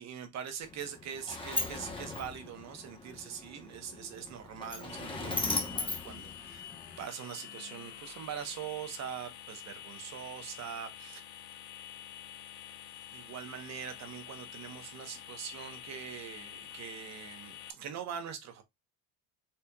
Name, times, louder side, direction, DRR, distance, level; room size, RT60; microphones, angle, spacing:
voice 1, 0.0-11.2 13.1-18.6, right 8 dB, 40° right, 1.0 m, -43 dB
Sliding door, 0.6-7.0, left 2 dB, 10° left, 1.0 m, -38 dB
sound 1, 4.9-17.7, left 11 dB, 85° left, 0.9 m, -48 dB
4.4 x 4.0 x 2.3 m
cardioid pair, 145°, 41 cm